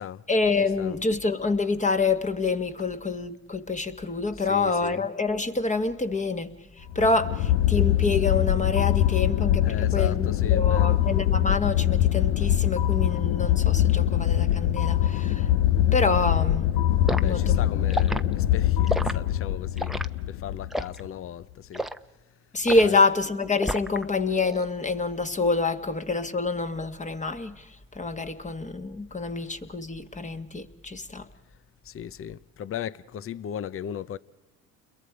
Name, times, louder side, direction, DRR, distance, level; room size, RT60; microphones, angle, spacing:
voice 1, 0.3-15.5 15.9-16.7 17.2-17.6 22.5-31.3, left 3 dB, 20° left, 1.8 m, -27 dB
voice 2, 4.3-5.1 9.6-11.1 17.1-20.0 20.3-21.9 22.8-23.0 31.8-34.2, left 9 dB, 40° left, 0.8 m, -37 dB
sound 1, 6.9-21.1, left 12 dB, 80° left, 0.8 m, -23 dB
Liquid, 17.1-17.3 17.9-18.2 18.9-19.2 19.8-20.1 20.7-21.0 21.7-22.0 22.7-22.9 23.6-24.0 24.4-24.7, equal, ahead, 0.9 m, -29 dB
29.5 x 22.5 x 5.0 m
supercardioid pair, 85°, 33 cm